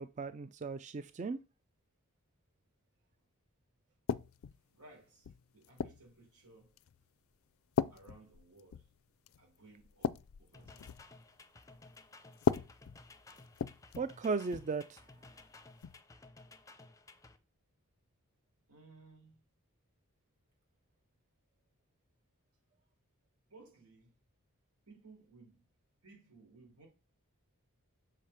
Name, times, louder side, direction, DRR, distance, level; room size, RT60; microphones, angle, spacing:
voice 1, 0.0-1.4 14.0-15.0, right 4 dB, 35° right, 0.4 m, -36 dB
sound 1, 4.1-4.6 5.2-6.1 6.8-7.0 7.8-8.9 9.3-9.4 9.8-11.1 12.3-14.1 14.5-14.7 15.8-16.0, left 7 dB, 65° left, 0.4 m, -36 dB
voice 2, 4.7-6.7 7.9-8.9 9.4-11.0 18.7-19.5 23.5-24.2 24.8-25.7 26.0-26.9, right 3 dB, 90° right, 4.5 m, -59 dB
sound 2, 10.5-17.4, left 3 dB, 15° left, 0.6 m, -57 dB
6.5 x 5.0 x 5.7 m
head